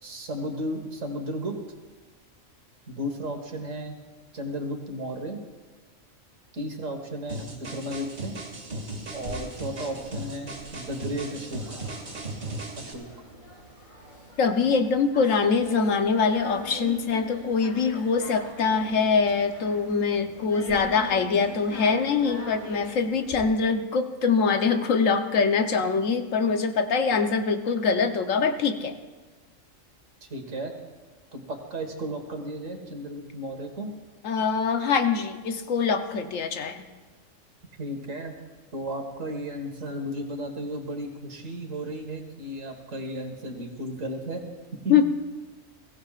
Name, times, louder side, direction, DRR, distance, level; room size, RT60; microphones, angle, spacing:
voice 1, 0.0-1.6 2.9-4.0 4.3-5.4 6.5-8.3 9.1-11.8 12.8-13.1 30.3-30.7 31.3-33.9 37.8-38.3 38.7-44.4 44.8-45.0, equal, 70° right, 3 dB, 2.1 m, -34 dB
sound 1, 7.3-12.9, right 2 dB, 90° right, 2.6 m, -37 dB
sound 2, 9.1-23.4, right 1 dB, 40° left, 4.5 m, -42 dB
voice 2, 14.4-28.9 34.2-36.8 44.9-45.0, left 5 dB, 75° left, 7 dB, 1.3 m, -24 dB
22.0 x 16.0 x 2.5 m, 1.3 s
omnidirectional pair, 1.4 m